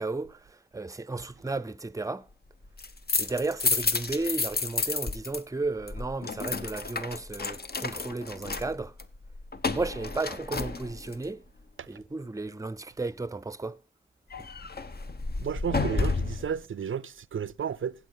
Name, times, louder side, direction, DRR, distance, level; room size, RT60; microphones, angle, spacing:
voice 1, 0.0-2.3 3.2-8.9 9.7-11.4 11.9-13.8 14.4-14.5, right 3 dB, 15° right, 0.6 m, -34 dB
sound 1, 2.6-5.4 5.7-11.2 14.3-16.5, left 3 dB, 50° left, 1.1 m, -31 dB
voice 2, 15.4-17.9, right 7 dB, 90° right, 0.5 m, -32 dB
15.5 x 8.3 x 3.9 m
wide cardioid pair, 85°, 20 cm